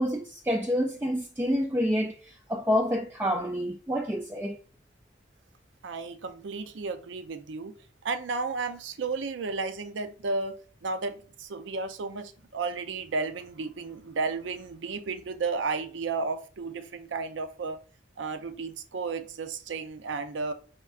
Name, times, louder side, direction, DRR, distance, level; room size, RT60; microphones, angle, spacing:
voice 1, 0.0-4.6, equal, 10° right, 0.3 m, -28 dB
voice 2, 5.8-7.7 8.0-10.6 10.8-17.8 18.2-20.5, right 4 dB, 90° right, 0.5 m, -33 dB
4.4 x 3.5 x 2.4 m
head